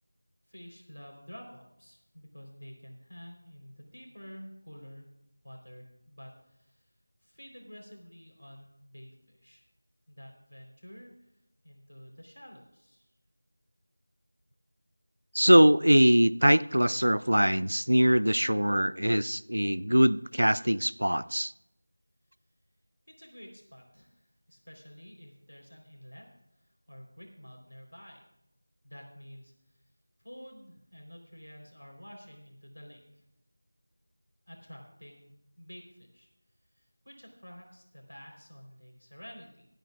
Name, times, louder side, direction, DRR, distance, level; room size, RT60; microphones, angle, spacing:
voice 1, 0.5-5.1 5.4-6.9 7.2-9.6 10.1-11.3 11.6-13.1 23.2-26.3 26.5-28.2 28.8-29.5 30.2-33.2 34.5-36.3 36.7-39.7, equal, 90° left, 1 dB, 3.8 m, -50 dB
voice 2, 15.3-21.5, equal, 80° right, 18 dB, 0.4 m, -22 dB
23.5 x 9.1 x 2.4 m, 0.85 s
figure-of-eight pair, 170°, 0 cm